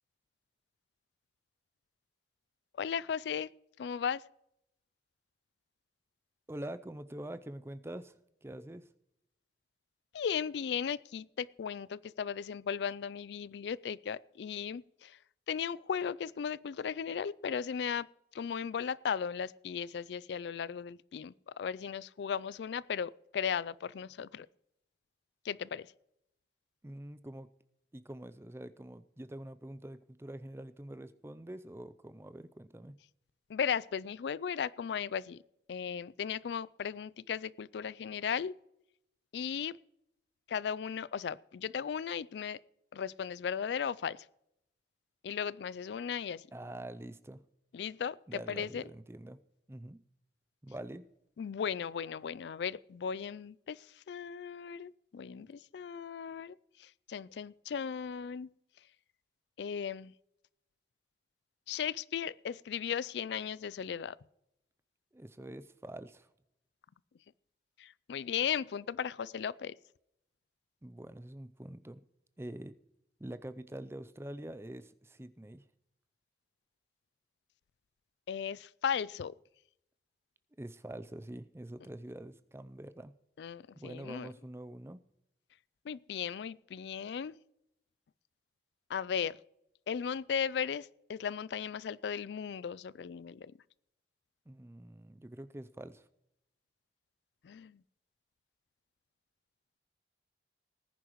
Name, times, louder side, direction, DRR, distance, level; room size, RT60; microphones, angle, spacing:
voice 1, 2.8-3.5 3.8-4.2 10.1-15.2 15.5-18.1 18.3-24.5 25.4-25.9 33.5-35.4 35.7-38.5 39.3-39.7 40.5-42.6 42.9-44.3 45.2-46.5 47.7-48.8 51.4-58.5 59.6-60.1 61.7-64.2 67.8-69.7 78.3-79.3 83.4-84.3 85.9-87.4 88.9-89.4 89.9-93.5 97.4-97.8, left 7 dB, 75° left, 0.3 m, -36 dB
voice 2, 6.5-8.9 26.8-27.5 27.9-33.0 46.5-47.4 48.3-49.4 49.7-50.0 50.6-51.1 65.1-66.3 70.8-72.0 72.4-72.7 73.2-75.7 80.6-83.1 83.8-85.0 94.5-96.1, right 1 dB, 15° right, 0.4 m, -45 dB
19.5 x 10.0 x 3.0 m
head